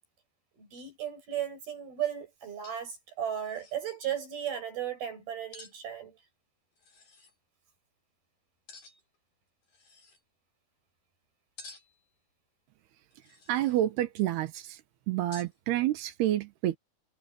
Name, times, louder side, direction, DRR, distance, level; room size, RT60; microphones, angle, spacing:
voice 1, 0.5-6.2, right 10 dB, 70° right, 8.7 m, -35 dB
sound 1, 2.2-2.3 2.6-3.0 3.2-3.8 5.5-5.8 6.8-7.4 8.7-9.2 9.6-10.2 11.6-12.1 13.1-13.9 15.3-15.6, left 3 dB, 60° left, 7.6 m, -52 dB
voice 2, 13.5-14.8 15.1-16.8, right 13 dB, 85° right, 3.3 m, -29 dB
omnidirectional pair, 4.6 m